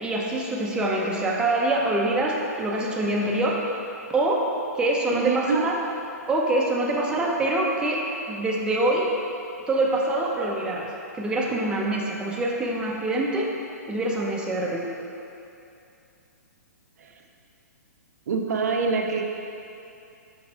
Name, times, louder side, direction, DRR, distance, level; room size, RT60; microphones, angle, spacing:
voice 1, 0.0-3.6 4.1-4.5 4.8-5.8 6.3-9.1 9.7-10.9 11.1-13.5 13.9-14.9, right 2 dB, 10° right, -3 dB, 0.7 m, -25 dB
voice 2, 5.1-5.6 17.0-17.1 18.3-19.3, right 4 dB, 65° right, 2 dB, 0.6 m, -25 dB
6.5 x 3.4 x 4.5 m, 2.7 s
hypercardioid pair, 125°, 9 cm